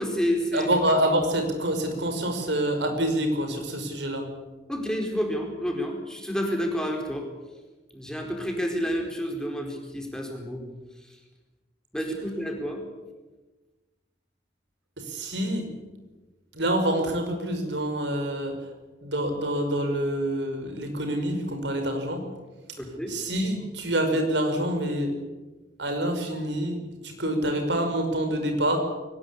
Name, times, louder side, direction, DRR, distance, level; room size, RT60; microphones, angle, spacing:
voice 1, 0.0-0.7 4.7-7.3 7.9-10.6 11.0-11.1 11.9-12.8 22.8-23.2, equal, 5° left, 1 dB, 4.5 m, -29 dB
voice 2, 0.5-4.3 15.0-15.7 16.5-18.7 19.0-22.2 23.1-25.1 25.8-28.8, right 1 dB, 90° right, 5 dB, 5.5 m, -26 dB
22.5 x 19.5 x 8.5 m, 1.2 s
head